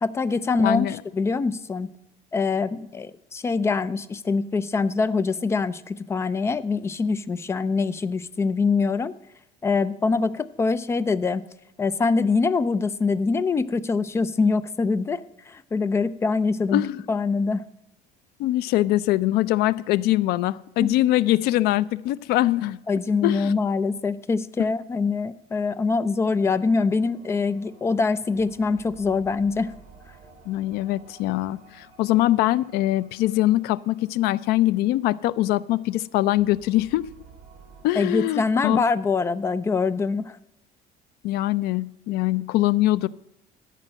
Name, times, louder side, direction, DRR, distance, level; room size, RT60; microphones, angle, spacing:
voice 1, 0.0-0.9 1.1-1.9 2.3-9.1 9.6-11.4 11.8-16.8 17.1-17.6 20.8-20.9 22.9-29.7 38.0-40.4, left 4 dB, 15° left, 16 dB, 0.3 m, -24 dB
voice 2, 0.6-1.0 16.7-17.0 18.4-22.8 23.2-23.5 30.5-37.1 37.8-38.8 41.2-43.1, left 15 dB, 75° left, 20 dB, 0.4 m, -23 dB
sound 1, 25.7-37.9, right 5 dB, 50° right, 2.5 m, -53 dB
13.0 x 5.4 x 7.5 m, 0.90 s
cardioid pair, 170°, 16 cm